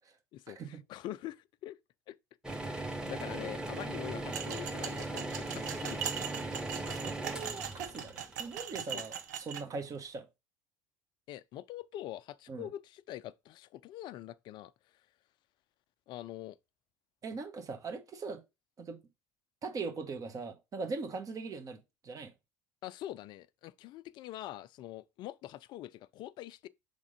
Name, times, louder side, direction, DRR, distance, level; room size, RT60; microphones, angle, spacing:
voice 1, 0.3-1.8 2.1-2.2 2.7-6.0 8.9-9.1 11.3-14.7 16.1-16.6 22.8-26.7, left 13 dB, 55° left, 0.4 m, -44 dB
sound 1, 2.4-9.4, right 2 dB, 10° right, 1.5 m, -39 dB
sound 2, 4.3-9.6, right 9 dB, 80° right, 0.8 m, -40 dB
voice 2, 6.9-10.2 12.5-12.7 17.2-18.4 18.8-19.0 19.6-22.3, right 4 dB, 40° right, 1.6 m, -40 dB
5.2 x 3.7 x 5.0 m
hypercardioid pair, 75°, 9 cm